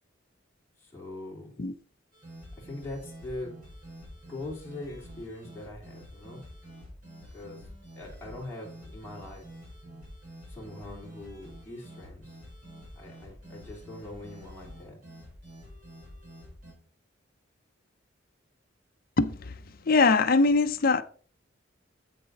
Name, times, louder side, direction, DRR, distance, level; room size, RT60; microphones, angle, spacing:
voice 1, 0.8-1.5 2.6-3.6 4.3-6.4 7.3-7.7 7.9-9.5 10.5-12.4 12.9-15.0, left 2 dB, 10° left, 2.8 m, -42 dB
sound 1, 2.1-16.7, equal, 45° right, 4.8 m, -48 dB
voice 2, 19.2-19.6 19.8-21.0, left 3 dB, 50° left, 0.6 m, -22 dB
8.1 x 6.8 x 4.0 m
head